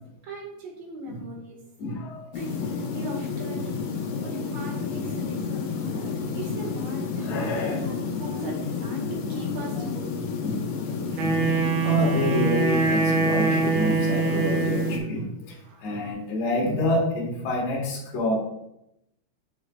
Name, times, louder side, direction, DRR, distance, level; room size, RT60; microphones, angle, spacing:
voice 1, 0.2-1.6 2.3-3.8 4.2-7.5 7.8-10.1, right 2 dB, 55° right, -2 dB, 2.5 m, -39 dB
voice 2, 1.8-2.3 2.6-2.7 4.1-4.3 7.2-7.8 10.4-11.4 11.8-18.4, left 1 dB, 60° left, -2 dB, 2.4 m, -28 dB
sound 1, 2.3-15.0, left 5 dB, 80° left, 2.5 m, -30 dB
Wind instrument woodwind instrument, 11.1-15.1, right 5 dB, 85° right, 2.5 m, -24 dB
7.1 x 6.5 x 2.3 m, 0.83 s
omnidirectional pair, 3.8 m